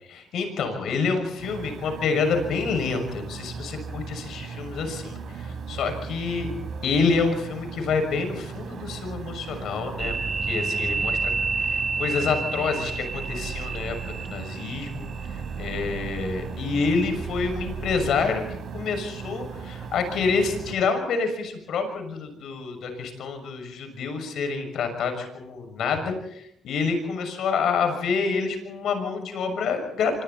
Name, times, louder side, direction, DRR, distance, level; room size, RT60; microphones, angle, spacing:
voice 1, 0.1-6.5 6.8-10.2 10.4-11.3 11.6-15.1 15.6-30.2, left 5 dB, 75° left, 6 dB, 6.4 m, -27 dB
sound 1, 1.4-20.8, right 6 dB, 65° right, 4.2 m, -37 dB
sound 2, 10.0-18.6, right 4 dB, 35° right, 1.4 m, -31 dB
26.5 x 25.5 x 4.2 m, 0.73 s
cardioid pair, 90°, 0 cm